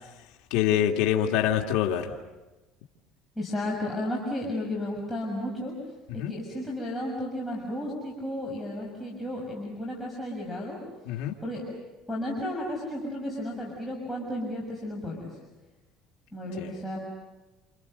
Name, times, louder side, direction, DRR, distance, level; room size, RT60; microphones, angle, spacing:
voice 1, 0.5-2.1 6.2-6.3 11.1-11.4 16.6-16.7, left 10 dB, 85° left, 2 dB, 2.2 m, -25 dB
voice 2, 3.3-5.7 6.1-10.8 11.4-11.6 12.1-15.4 16.3-17.0, left 1 dB, 15° left, -3 dB, 6.7 m, -33 dB
29.5 x 29.0 x 6.7 m, 1.1 s
cardioid pair, 130°, 0 cm